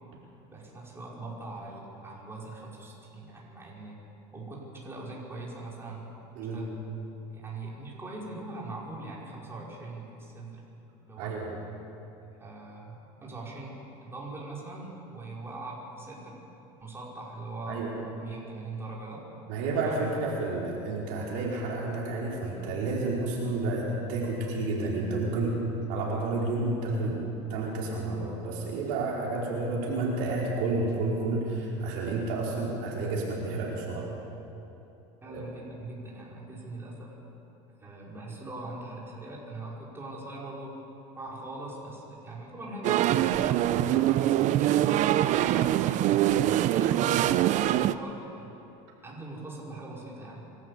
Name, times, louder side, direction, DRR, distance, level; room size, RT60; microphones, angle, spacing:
voice 1, 0.5-4.0 4.3-6.7 7.3-10.6 11.1-11.4 12.4-16.4 16.8-17.9 18.2-19.3 19.8-20.1 35.2-37.2 37.7-40.7 41.2-43.7 44.1-48.5 49.0-50.5, right 2 dB, 15° right, -4 dB, 5.3 m, -41 dB
voice 2, 6.3-6.6 11.2-11.5 17.7-17.9 19.5-25.6 25.9-27.2 27.5-34.1 35.2-35.4 43.7-43.9, right 2 dB, 70° right, -3 dB, 5.0 m, -30 dB
sound 1, 42.8-47.9, right 13 dB, 50° right, 0.7 m, -24 dB
25.0 x 13.0 x 8.5 m, 2.9 s
supercardioid pair, 110°, 16 cm